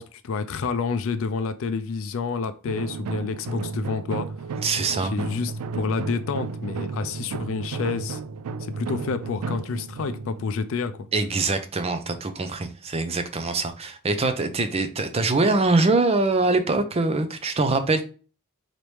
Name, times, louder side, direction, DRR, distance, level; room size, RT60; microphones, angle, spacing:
voice 1, 0.0-4.3 5.0-8.2 8.6-11.1, left 5 dB, 60° left, 0.4 m, -29 dB
sound 1, 2.7-11.4, right 4 dB, 80° right, 0.4 m, -33 dB
voice 2, 4.6-5.1 11.1-18.0, right 3 dB, 30° right, 0.5 m, -23 dB
4.0 x 3.1 x 3.3 m
head